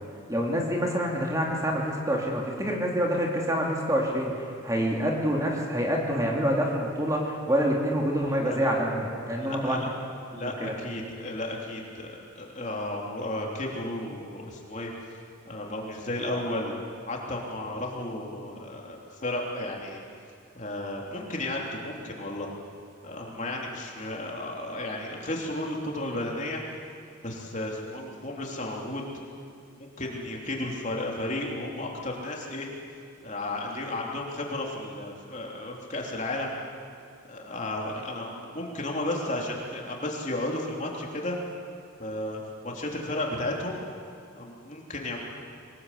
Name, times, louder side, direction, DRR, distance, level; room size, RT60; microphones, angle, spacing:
voice 1, 0.3-9.8 10.6-10.7, equal, 15° right, -1 dB, 2.9 m, -27 dB
voice 2, 9.4-9.9 10.3-15.2 15.4-16.7 17.1-20.0 20.5-22.5 23.0-26.6 27.2-29.0 29.8-32.7 33.2-36.5 37.3-41.4 42.0-43.8 44.3-45.2, left 1 dB, 35° left, -1 dB, 3.3 m, -33 dB
23.5 x 20.0 x 8.4 m, 2.3 s
head